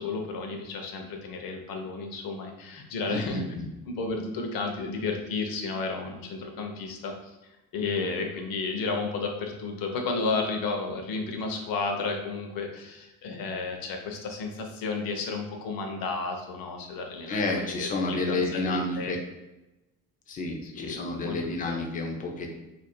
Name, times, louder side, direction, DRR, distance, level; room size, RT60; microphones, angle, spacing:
voice 1, 0.0-3.4 3.9-7.4 7.7-19.2 20.6-21.4, left 4 dB, 70° left, 3 dB, 0.8 m, -32 dB
voice 2, 3.1-3.7 17.3-19.2 20.3-22.6, left 2 dB, 25° left, 1 dB, 0.4 m, -30 dB
2.7 x 2.6 x 4.3 m, 0.99 s
cardioid pair, 170°, 36 cm